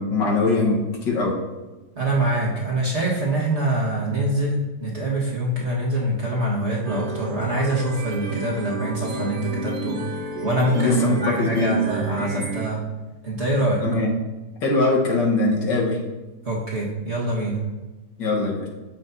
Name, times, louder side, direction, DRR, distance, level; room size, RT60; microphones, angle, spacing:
voice 1, 0.0-1.4 10.7-11.8 13.8-14.1 14.6-16.0 18.2-18.7, left 2 dB, 70° left, -1 dB, 2.0 m, -21 dB
voice 2, 1.9-10.1 10.4-12.8 13.2-13.8 16.4-17.6, right 1 dB, 40° right, -5 dB, 1.7 m, -24 dB
sound 1, 6.8-12.7, right 1 dB, 65° right, 0.5 m, -32 dB
14.5 x 5.8 x 2.7 m, 1.1 s
omnidirectional pair, 2.0 m